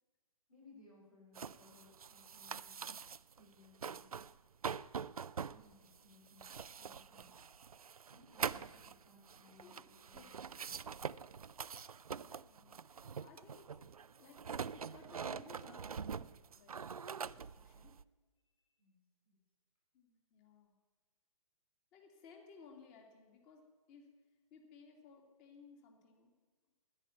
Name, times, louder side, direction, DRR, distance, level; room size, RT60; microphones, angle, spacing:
voice 1, 0.5-3.0 3.3-4.3 5.4-7.5 8.1-11.0 18.8-19.0 19.2-19.4, left 2 dB, 90° left, -3 dB, 5.2 m, -64 dB
sound 1, 1.4-3.4 3.7-4.4 4.6-18.0, right 6 dB, 80° right, 0.4 m, -44 dB
voice 2, 9.4-9.9 10.1-10.3 12.2-13.8 14.2-14.4 14.7-17.9 19.9-20.8 21.9-26.3, left 5 dB, 30° left, 3 dB, 2.5 m, -60 dB
10.5 x 9.9 x 9.7 m, 1.3 s
figure-of-eight pair, 130°, 18 cm